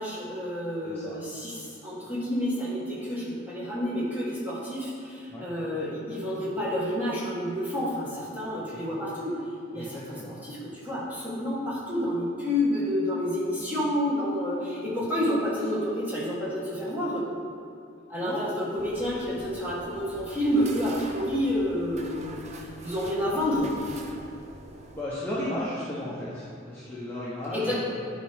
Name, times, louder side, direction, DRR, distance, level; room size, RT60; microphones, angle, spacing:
voice 1, 0.0-9.4 9.7-17.3 18.1-22.4 22.8-23.7 27.5-27.8, equal, 10° right, -8 dB, 1.6 m, -29 dB
voice 2, 0.8-1.1 5.3-5.5 8.7-8.8 9.8-10.3 18.2-18.4 24.9-27.8, left 1 dB, 10° left, -10 dB, 0.9 m, -34 dB
sound 1, 18.8-25.0, right 2 dB, 35° right, 0.5 m, -44 dB
9.8 x 4.7 x 3.6 m, 2.5 s
head